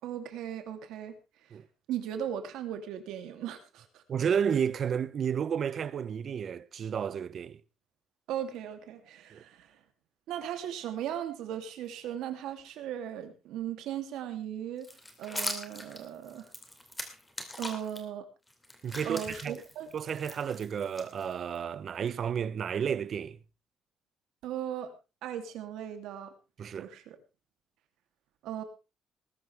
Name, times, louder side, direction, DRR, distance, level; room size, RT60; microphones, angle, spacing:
voice 1, 0.0-1.1 1.9-4.0 8.3-9.8 10.3-14.9 15.2-16.5 17.6-18.3 19.0-19.9 24.4-24.9 25.2-26.3 26.8-27.2 28.4-28.6, right 10 dB, 90° right, 2.8 m, -37 dB
voice 2, 4.1-7.6 9.3-9.4 18.8-19.6 19.9-23.4 26.6-26.9, right 7 dB, 40° right, 0.7 m, -32 dB
sound 1, 14.8-18.0 18.5-21.6, left 1 dB, 10° left, 2.6 m, -41 dB
20.0 x 12.5 x 3.4 m
cardioid pair, 170°, 0 cm